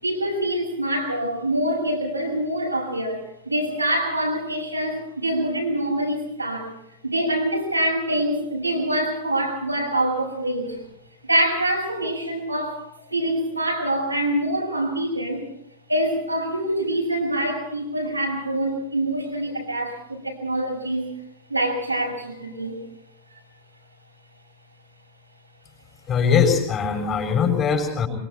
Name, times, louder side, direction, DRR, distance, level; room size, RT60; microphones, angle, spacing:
voice 1, 0.0-6.8 7.0-10.8 11.2-15.4 15.9-21.1 21.5-22.8, right 1 dB, 85° right, -1 dB, 6.5 m, -25 dB
voice 2, 26.1-28.1, left 6 dB, 30° left, 2 dB, 7.1 m, -21 dB
26.5 x 23.5 x 4.5 m, 0.74 s
figure-of-eight pair, 90°, 0 cm